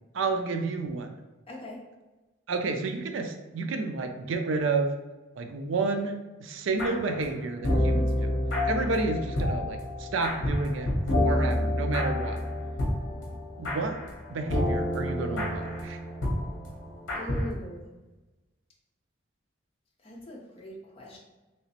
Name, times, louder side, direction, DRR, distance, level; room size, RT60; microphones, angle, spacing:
voice 1, 0.1-1.2 2.5-4.9 5.4-8.4 8.7-10.9 11.1-12.4 13.6-14.0 14.3-16.0, right 3 dB, 70° right, 5 dB, 0.4 m, -30 dB
voice 2, 1.5-1.8 17.1-17.9 20.0-21.2, equal, 30° left, -3 dB, 0.6 m, -41 dB
sound 1, 6.8-7.3 7.6-17.5, left 1 dB, 60° left, 0.8 m, -29 dB
3.1 x 2.9 x 2.8 m, 1.1 s
head